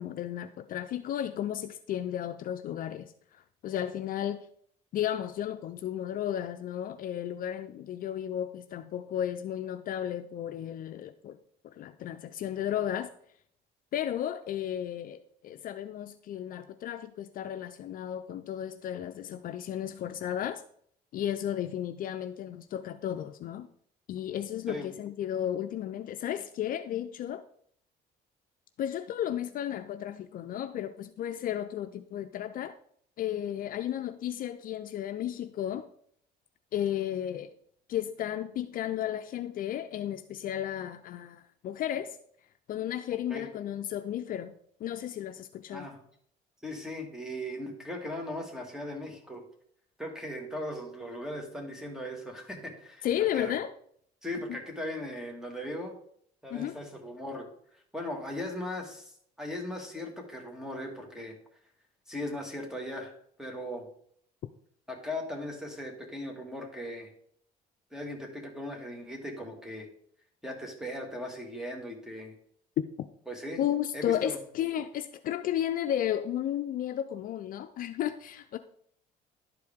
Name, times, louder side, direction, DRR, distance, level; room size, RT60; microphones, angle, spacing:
voice 1, 0.0-3.1 3.6-4.5 4.9-11.4 11.7-13.1 13.9-20.6 21.1-23.7 24.1-27.4 28.8-32.7 33.2-35.9 36.7-37.5 37.9-42.2 42.7-44.5 44.8-45.9 53.0-53.7 56.5-56.7 72.8-73.1 73.6-78.6, left 11 dB, 55° left, 0.5 m, -33 dB
voice 2, 46.6-49.5 50.0-53.1 53.3-53.6 54.2-56.0 56.4-57.5 57.9-59.1 59.4-61.4 62.1-63.1 63.4-63.9 64.9-67.1 67.9-69.9 70.4-72.3 73.3-73.6 73.9-74.4, left 1 dB, 5° right, 1.8 m, -38 dB
11.0 x 4.8 x 3.6 m
cardioid pair, 110°, 17 cm